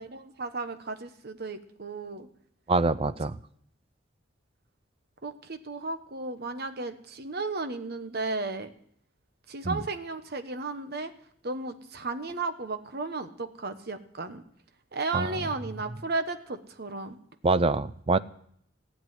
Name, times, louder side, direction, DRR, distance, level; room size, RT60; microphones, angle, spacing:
voice 1, 0.0-2.3 5.2-8.7 9.5-11.1 11.4-14.4 14.9-17.2, right 3 dB, 55° right, 9 dB, 1.2 m, -34 dB
voice 2, 2.7-3.4 9.6-9.8 15.1-15.3 17.4-18.2, right 3 dB, 30° right, 15 dB, 0.5 m, -25 dB
16.0 x 8.0 x 9.5 m, 0.66 s
head